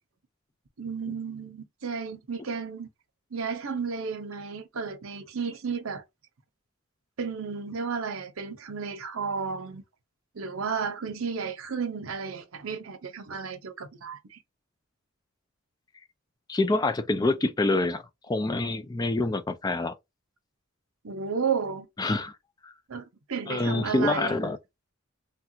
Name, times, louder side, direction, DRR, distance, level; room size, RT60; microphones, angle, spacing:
voice 1, 0.8-2.9 3.3-6.0 7.2-9.8 10.3-14.4 21.0-21.9 22.9-24.5, right 5 dB, 80° right, 0.7 m, -33 dB
voice 2, 16.5-19.9 22.0-22.3 22.6-22.7 23.5-24.6, left 2 dB, 20° left, 0.3 m, -26 dB
3.3 x 2.4 x 2.7 m
head